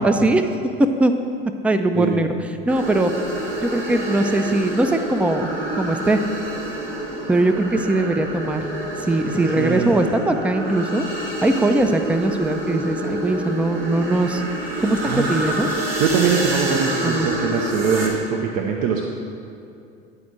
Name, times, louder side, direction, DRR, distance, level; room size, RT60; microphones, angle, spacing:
voice 1, 0.0-0.5 1.0-1.1 1.6-2.3 2.7-3.1 3.6-5.5 5.8-6.2 7.3-8.6 9.0-11.0 11.4-14.4 14.8-15.7 17.0-17.3, right 2 dB, 5° right, 8 dB, 0.4 m, -20 dB
sound 1, 2.7-18.1, right 1 dB, 85° right, 1.6 m, -27 dB
voice 2, 9.6-9.9 15.0-15.3 16.0-19.0, right 6 dB, 55° right, 2 dB, 0.7 m, -22 dB
9.8 x 4.2 x 6.1 m, 2.5 s
hypercardioid pair, 85°, 30 cm